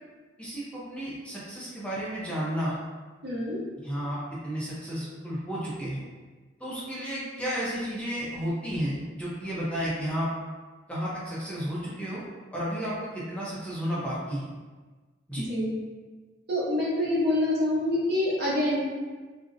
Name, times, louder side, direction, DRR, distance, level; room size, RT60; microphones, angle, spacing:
voice 1, 0.4-2.8 3.8-4.2 4.4-6.0 6.6-10.3 10.9-12.2 12.5-14.5 15.3-15.4, equal, 5° left, -8 dB, 0.4 m, -32 dB
voice 2, 3.2-3.6 15.4-15.7 16.5-18.9, left 1 dB, 55° right, -6 dB, 0.7 m, -26 dB
2.4 x 2.0 x 2.5 m, 1.3 s
head